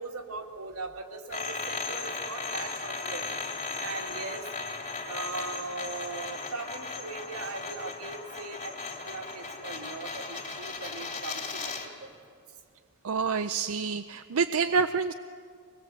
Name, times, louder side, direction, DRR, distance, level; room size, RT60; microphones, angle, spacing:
voice 1, 0.0-3.4 3.8-4.5 5.1-12.1, right 3 dB, 90° right, 1 dB, 2.4 m, -40 dB
sound 1, 1.3-11.9, left 3 dB, 35° left, 2.8 m, -36 dB
voice 2, 13.0-15.1, right 5 dB, 65° right, 9 dB, 0.5 m, -27 dB
24.5 x 20.0 x 7.8 m, 2.2 s
head